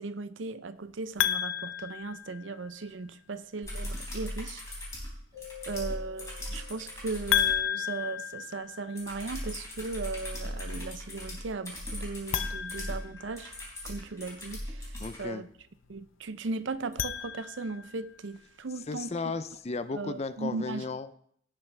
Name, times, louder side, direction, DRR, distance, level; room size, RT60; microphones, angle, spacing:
voice 1, 0.0-4.9 5.7-13.5 13.8-15.5 15.9-19.3 19.9-20.8, right 3 dB, 75° right, 0.6 m, -37 dB
sound 1, 1.2-2.9 7.3-9.3 12.2-13.8 16.7-18.0, left 10 dB, 85° left, 0.5 m, -32 dB
sound 2, 3.6-7.6 9.0-15.2 16.9-17.0, left 1 dB, 15° left, 3.7 m, -39 dB
sound 3, 5.3-8.0, left 13 dB, 30° right, 5.6 m, -50 dB
voice 2, 15.0-15.4 18.9-21.2, left 4 dB, 35° left, 0.5 m, -35 dB
17.5 x 6.9 x 3.4 m
head